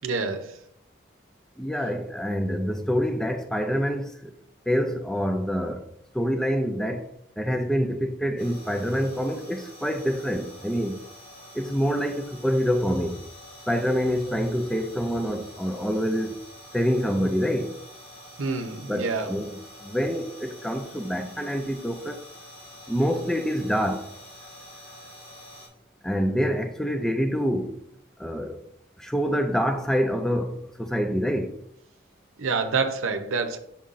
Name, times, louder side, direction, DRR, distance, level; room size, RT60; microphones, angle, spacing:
voice 1, 0.0-0.6 18.4-19.3 32.4-33.6, right 4 dB, 80° right, 0.7 m, -27 dB
voice 2, 1.6-4.3 4.7-5.9 6.1-11.0 11.5-13.2 13.7-16.4 16.7-17.7 18.9-19.5 19.8-22.2 22.9-24.1 26.0-27.9 28.2-28.6 29.0-31.6, equal, 5° left, 0.3 m, -26 dB
sound 1, 8.4-25.7, equal, 35° left, 2.3 m, -47 dB
7.1 x 5.4 x 2.5 m
head